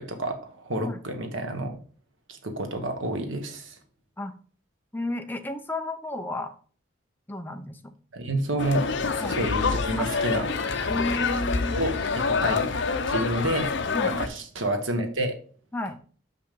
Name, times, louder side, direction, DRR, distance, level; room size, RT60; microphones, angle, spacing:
voice 1, 0.0-1.7 2.3-3.8 8.1-8.9 9.1-10.5 11.7-12.7 13.1-13.7 14.0-15.3, right 1 dB, 90° right, 6 dB, 1.5 m, -29 dB
voice 2, 4.9-6.5 7.3-7.9 9.2-9.4 10.0-10.1 10.9-11.8 12.3-12.5 13.9-14.1 15.7-16.0, left 1 dB, 10° left, 6 dB, 0.6 m, -32 dB
sound 1, 8.6-14.3, left 4 dB, 70° left, 0.7 m, -27 dB
6.1 x 5.6 x 5.3 m, 0.43 s
head